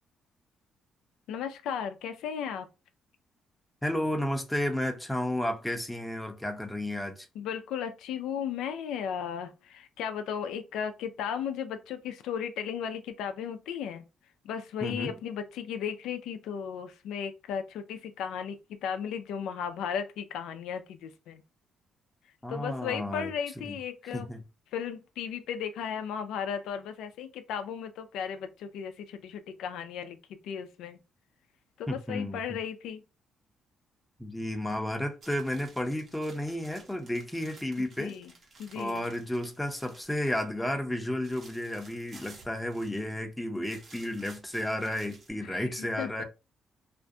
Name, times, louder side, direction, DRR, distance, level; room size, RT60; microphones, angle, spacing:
voice 1, 1.3-2.7 7.4-14.0 14.4-21.4 22.5-24.3 24.7-31.0 31.8-33.0 38.0-38.3 38.6-39.0 45.4-46.2, left 8 dB, 85° left, 0.3 m, -35 dB
voice 2, 3.8-7.3 14.8-15.2 22.4-23.7 24.1-24.4 31.9-32.6 34.2-38.2 38.7-46.2, left 1 dB, 5° left, 0.6 m, -32 dB
sound 1, 35.2-40.5 40.8-43.2 43.5-45.3, right 3 dB, 50° right, 0.9 m, -54 dB
2.5 x 2.1 x 2.6 m
cardioid pair, 90°, 0 cm